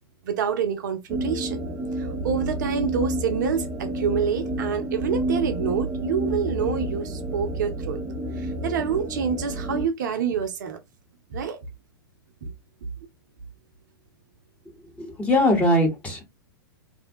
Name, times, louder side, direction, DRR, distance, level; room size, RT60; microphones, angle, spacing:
voice 1, 0.2-1.6 2.0-8.0 8.4-10.8 11.3-11.6 12.4-12.5, right 7 dB, 50° right, 0.4 m, -27 dB
sound 1, 1.1-9.9, right 1 dB, 5° right, 0.6 m, -29 dB
voice 2, 15.0-16.2, left 1 dB, 10° left, 0.9 m, -21 dB
2.6 x 2.1 x 2.6 m
figure-of-eight pair, 100°, 12 cm